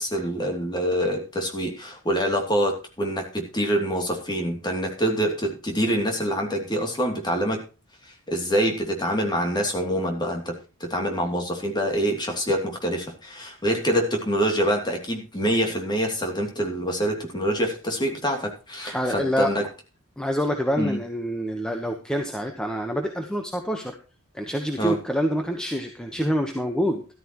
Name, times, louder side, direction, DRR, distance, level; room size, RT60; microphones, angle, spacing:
voice 1, 0.0-7.6 8.0-19.6 20.8-21.0 24.8-25.0, equal, 20° left, 2 dB, 3.0 m, -25 dB
voice 2, 18.8-19.5 20.2-24.0 24.3-27.1, equal, 5° left, 4 dB, 1.2 m, -26 dB
13.5 x 13.5 x 3.1 m, 0.32 s
head